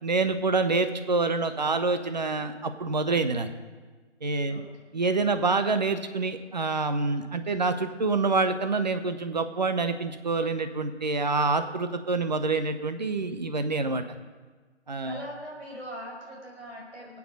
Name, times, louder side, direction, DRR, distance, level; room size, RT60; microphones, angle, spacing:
voice 1, 0.0-3.5 4.2-4.6 4.9-14.0 14.9-15.2, right 3 dB, 35° right, 10 dB, 0.7 m, -27 dB
voice 2, 15.0-17.2, equal, 65° right, -2 dB, 5.2 m, -41 dB
19.0 x 8.5 x 5.1 m, 1.4 s
figure-of-eight pair, 165°, 36 cm